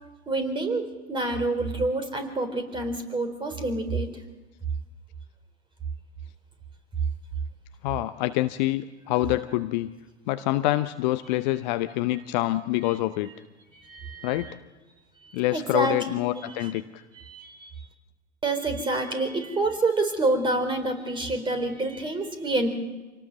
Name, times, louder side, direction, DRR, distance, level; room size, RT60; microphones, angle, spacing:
voice 1, 0.3-4.1 13.7-14.5 15.2-16.7 17.2-17.7 18.4-22.7, right 2 dB, 15° right, 8 dB, 3.9 m, -28 dB
voice 2, 7.8-9.9 10.3-13.3 14.2-14.6 15.3-17.0, left 16 dB, 40° left, 12 dB, 0.8 m, -26 dB
26.5 x 18.5 x 6.7 m, 1.2 s
figure-of-eight pair, 90°, 35 cm